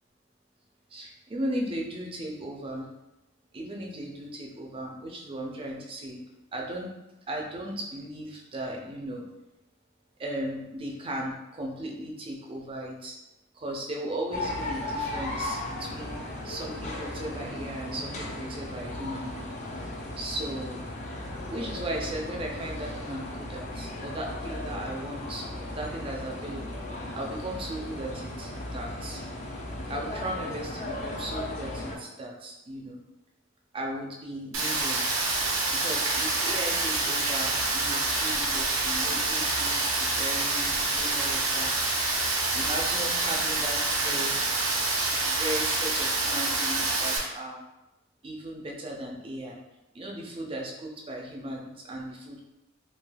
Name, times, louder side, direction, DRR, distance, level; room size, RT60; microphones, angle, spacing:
voice 1, 0.9-2.9 3.5-6.2 6.5-6.9 7.3-9.2 10.2-13.2 13.5-19.5 20.2-20.8 21.5-25.4 25.7-29.2 29.9-33.0 33.7-35.2 35.7-42.1 42.5-44.4 45.2-47.6 48.2-49.6 49.9-52.4, right 1 dB, 25° right, 0 dB, 0.4 m, -36 dB
sound 1, 14.3-32.0, left 1 dB, 35° left, 0.4 m, -36 dB
Rain, 34.5-47.2, right 2 dB, 75° right, 0.7 m, -27 dB
3.2 x 2.6 x 2.2 m, 0.96 s
head